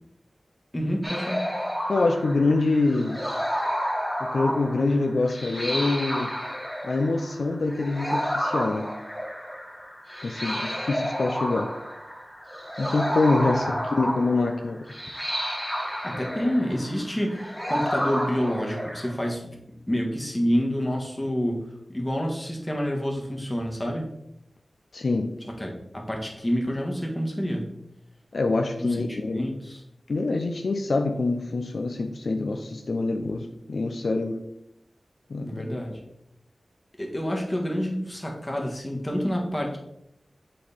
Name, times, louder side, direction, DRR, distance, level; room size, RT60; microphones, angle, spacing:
voice 1, 0.7-1.5 13.4-13.7 16.0-19.6 19.9-24.1 25.6-27.7 28.8-29.8 35.4-36.0 37.0-39.8, equal, 20° left, 1 dB, 1.5 m, -28 dB
sound 1, 1.0-19.1, equal, ahead, 1.6 m, -31 dB
voice 2, 1.9-3.2 4.3-6.3 6.8-8.9 10.2-11.7 12.8-14.8 24.9-25.3 28.3-29.5 30.1-34.4 35.3-35.8, left 3 dB, 75° left, 4 dB, 0.5 m, -25 dB
7.6 x 4.2 x 3.5 m, 0.79 s
wide cardioid pair, 70°, 0 cm